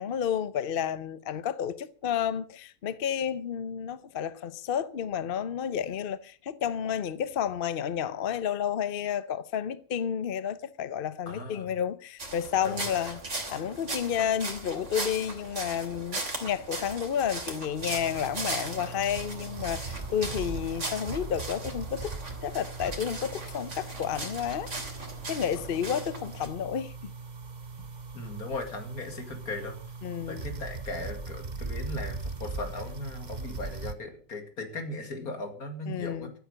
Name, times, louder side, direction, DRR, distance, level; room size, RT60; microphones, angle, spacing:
voice 1, 0.0-13.2 13.5-22.1 22.4-24.7 25.3-27.1 30.0-30.5 35.9-36.3, left 8 dB, 45° left, 0.9 m, -31 dB
voice 2, 11.3-11.7 12.6-13.0 25.6-25.7 27.8-27.9 28.1-29.8 30.3-36.3, left 2 dB, 90° left, 2.9 m, -38 dB
sound 1, 12.2-26.5, right 2 dB, 55° right, 3.4 m, -38 dB
sound 2, 17.8-33.9, right 3 dB, 35° right, 1.1 m, -40 dB
14.5 x 8.3 x 7.9 m
omnidirectional pair, 1.5 m